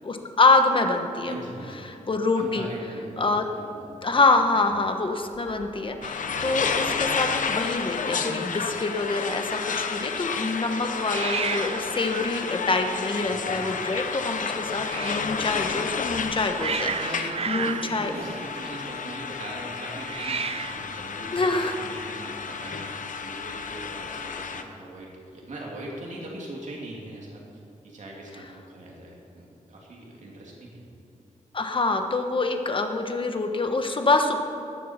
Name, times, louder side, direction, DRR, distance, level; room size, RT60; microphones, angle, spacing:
voice 1, 0.0-1.3 2.1-2.7 3.2-3.4 4.0-18.1 21.3-21.7 31.5-34.4, left 3 dB, 40° left, 5 dB, 1.3 m, -25 dB
voice 2, 1.2-1.8 2.4-4.1 4.4-4.7 8.0-8.6 13.3-13.7 16.8-27.4 27.8-30.8, right 1 dB, 60° right, -3 dB, 2.8 m, -40 dB
Hiss, 4.8-6.1 6.4-6.8 7.1-7.2 7.4-8.1 11.0-15.4 16.1-19.1 20.0-20.9, right 6 dB, 45° right, 0.5 m, -35 dB
sound 1, 6.0-24.6, left 5 dB, 70° left, 0.9 m, -31 dB
19.5 x 7.5 x 5.9 m, 2.8 s
wide cardioid pair, 95°, 14 cm